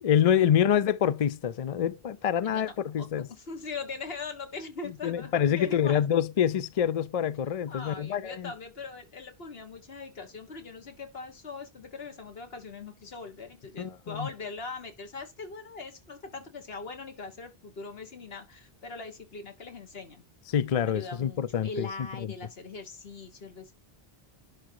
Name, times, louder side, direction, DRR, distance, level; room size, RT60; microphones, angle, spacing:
voice 1, 0.0-3.3 5.0-8.5 13.8-14.3 20.5-21.9 22.2-22.3, left 9 dB, 50° left, 0.5 m, -26 dB
voice 2, 3.0-6.0 7.7-20.2 20.9-23.8, left 4 dB, 70° left, 1.8 m, -41 dB
11.0 x 3.7 x 4.7 m
omnidirectional pair, 1.1 m